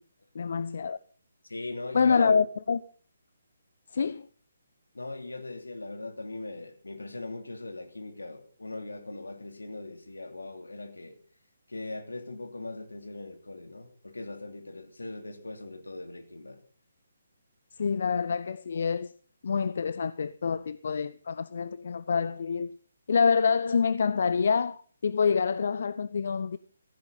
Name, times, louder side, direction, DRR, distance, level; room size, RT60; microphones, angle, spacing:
voice 1, 0.3-1.0 1.9-2.8 3.9-4.3 17.8-19.1 19.4-22.7 23.1-26.6, left 5 dB, 55° left, 0.6 m, -26 dB
voice 2, 1.5-2.3 4.9-11.2 11.7-16.6, left 2 dB, 75° left, 3.0 m, -39 dB
15.5 x 15.5 x 4.1 m
figure-of-eight pair, 140°, 0 cm